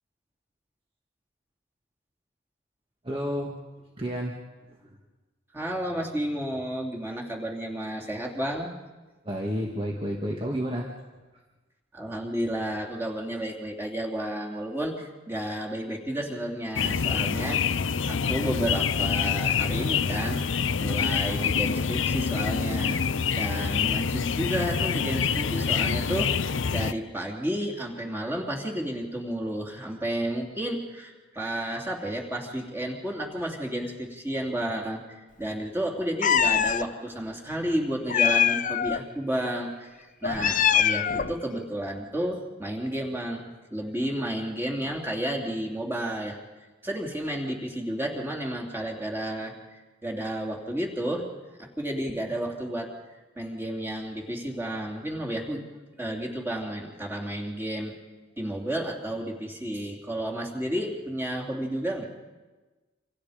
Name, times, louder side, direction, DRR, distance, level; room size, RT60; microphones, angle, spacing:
voice 1, 3.0-3.5 4.0-4.3 9.3-10.9, equal, 25° right, -1 dB, 2.0 m, -30 dB
voice 2, 5.5-8.7 11.9-17.6 18.1-20.4 20.8-23.0 23.3-46.4 46.8-49.5 50.0-51.3 51.6-52.9 53.3-55.6 56.0-57.9 58.4-62.1, right 1 dB, 10° right, -1 dB, 3.2 m, -32 dB
sound 1, 16.8-26.9, left 6 dB, 70° left, 0.7 m, -26 dB
Meow, 36.2-36.9 38.1-39.0 40.2-41.4, left 8 dB, 40° left, 0.7 m, -23 dB
28.5 x 26.5 x 5.2 m, 1.3 s
head